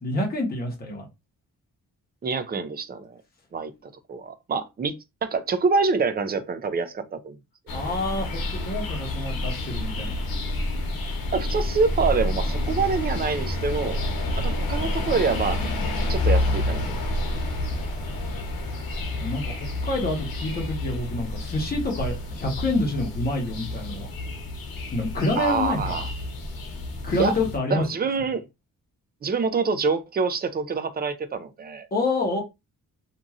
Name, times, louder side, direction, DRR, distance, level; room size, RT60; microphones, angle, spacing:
voice 1, 0.0-1.0 7.7-10.3 19.1-24.1 24.9-26.0 27.0-27.8 31.9-32.4, left 2 dB, 25° left, 1.0 m, -27 dB
voice 2, 2.2-3.2 3.5-3.7 4.1-4.9 5.2-7.4 11.3-14.0 14.4-15.6 16.1-17.0 25.4-26.1 27.2-27.3 27.7-28.4 29.2-31.9, right 4 dB, 30° right, 0.4 m, -26 dB
sound 1, 7.7-27.6, left 1 dB, 85° left, 1.0 m, -29 dB
2.9 x 2.5 x 2.3 m
wide cardioid pair, 180°, 34 cm